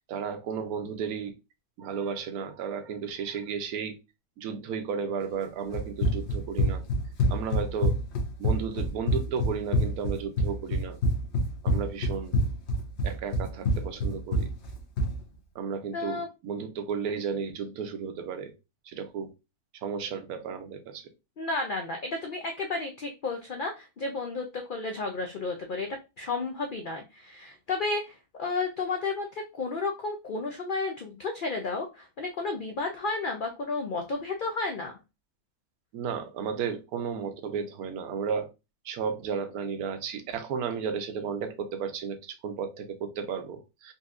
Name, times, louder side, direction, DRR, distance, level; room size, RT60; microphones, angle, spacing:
voice 1, 0.0-1.3 1.8-4.0 4.4-6.8 7.3-8.0 8.4-11.0 11.6-12.4 13.0-14.5 15.5-18.5 18.8-19.3 19.7-21.1 35.9-38.5 38.8-43.9, right 6 dB, 80° right, 1.1 m, -33 dB
Run, 5.7-15.2, equal, 55° left, 1.0 m, -26 dB
voice 2, 15.9-16.3 21.4-35.0, left 3 dB, 75° left, 0.4 m, -32 dB
4.1 x 2.6 x 2.4 m
omnidirectional pair, 1.5 m